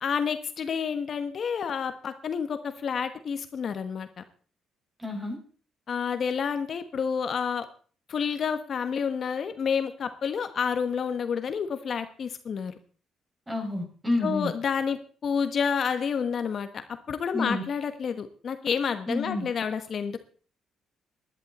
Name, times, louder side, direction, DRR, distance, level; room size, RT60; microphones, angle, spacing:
voice 1, 0.0-4.2 5.9-7.7 8.1-12.7 14.2-20.2, left 6 dB, 55° left, 9 dB, 1.2 m, -29 dB
voice 2, 5.0-5.4 13.5-14.5 17.3-17.6 19.1-19.4, left 2 dB, 15° right, 3 dB, 5.8 m, -29 dB
16.0 x 11.5 x 4.2 m, 0.40 s
cardioid pair, 90°, 0 cm